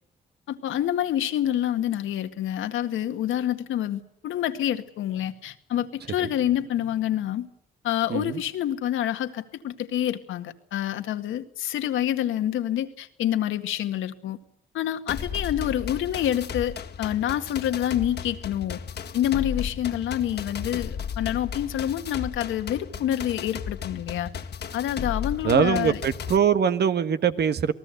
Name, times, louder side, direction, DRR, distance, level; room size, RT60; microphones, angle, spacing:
voice 1, 0.5-7.5 7.8-14.4 14.7-18.8 19.1-24.3 24.7-26.0, left 11 dB, 80° left, 2.0 m, -27 dB
voice 2, 8.1-8.4 25.4-27.7, right 7 dB, 55° right, 1.5 m, -22 dB
sound 1, 15.1-26.4, left 7 dB, 55° left, 1.9 m, -35 dB
28.0 x 19.0 x 7.9 m
cardioid pair, 90°, 20 cm